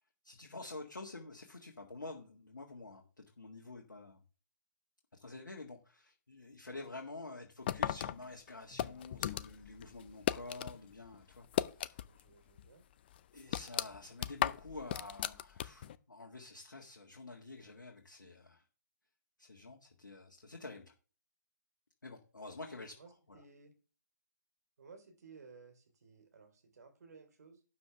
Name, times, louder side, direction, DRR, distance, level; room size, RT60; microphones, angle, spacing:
voice 1, 0.2-4.2 5.1-11.5 11.7-11.9 13.3-18.6 19.4-20.9 22.0-23.0 23.3-23.4, left 2 dB, 70° left, 1 dB, 1.9 m, -49 dB
sound 1, 7.7-10.8 11.1-12.3 12.6-12.7 13.1-16.0, left 11 dB, 30° left, 0.5 m, -36 dB
voice 2, 12.0-12.8 23.0-23.7 24.8-27.6, right 4 dB, 55° right, 5 dB, 3.3 m, -58 dB
12.0 x 7.5 x 3.4 m, 0.36 s
figure-of-eight pair, 135°, 10 cm